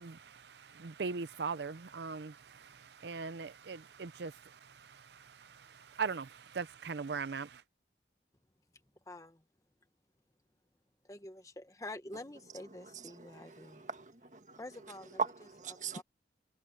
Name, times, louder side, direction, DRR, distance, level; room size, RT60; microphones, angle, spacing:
voice 1, 0.0-7.6, right 5 dB, 70° right, 0.6 m, -40 dB
voice 2, 9.1-9.4 11.0-13.8 14.5-15.2 15.9-16.0, left 1 dB, 20° left, 1.2 m, -47 dB
voice 3, 12.7-16.0, right 5 dB, 45° right, 1.6 m, -41 dB
head